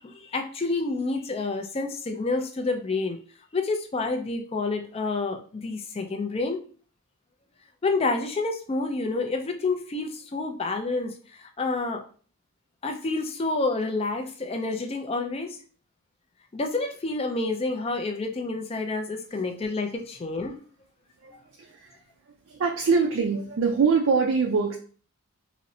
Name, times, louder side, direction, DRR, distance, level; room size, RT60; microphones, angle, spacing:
voice 1, 0.0-3.2 3.5-6.6 7.8-12.0 12.8-15.6 16.5-20.6, left 3 dB, 25° left, 4 dB, 0.3 m, -29 dB
voice 2, 21.6-21.9 22.5-24.8, right 5 dB, 60° right, 2 dB, 0.3 m, -23 dB
4.0 x 2.0 x 2.6 m, 0.42 s
head